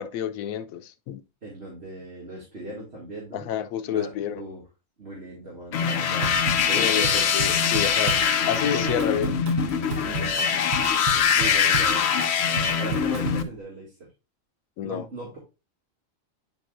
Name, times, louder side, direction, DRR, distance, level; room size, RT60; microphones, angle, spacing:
voice 1, 0.0-1.2 3.3-4.4 6.7-8.2 8.5-9.3 14.8-15.0, left 9 dB, 90° left, 1.1 m, -29 dB
voice 2, 1.4-3.5 3.8-4.6 5.0-6.4 6.6-7.2 8.6-9.2 10.0-10.5 11.4-12.1 12.8-14.1 14.8-15.4, right 1 dB, 50° right, 2.5 m, -37 dB
sound 1, 5.7-13.4, left 7 dB, 60° left, 0.9 m, -23 dB
Drum kit / Drum, 6.2-13.5, right 4 dB, 85° right, 1.5 m, -33 dB
9.2 x 5.3 x 2.5 m
omnidirectional pair, 1.4 m